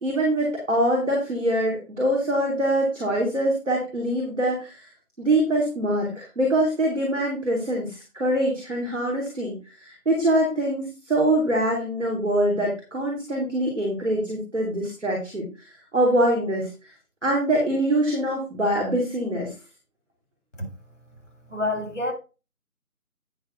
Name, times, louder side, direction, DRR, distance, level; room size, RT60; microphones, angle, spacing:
voice 1, 0.0-4.9 5.2-15.7 15.9-16.7 17.2-19.5, right 1 dB, ahead, 1.5 m, -24 dB
voice 2, 21.5-22.1, left 2 dB, 55° left, 3.8 m, -27 dB
9.2 x 6.9 x 3.9 m
figure-of-eight pair, 165°, 44 cm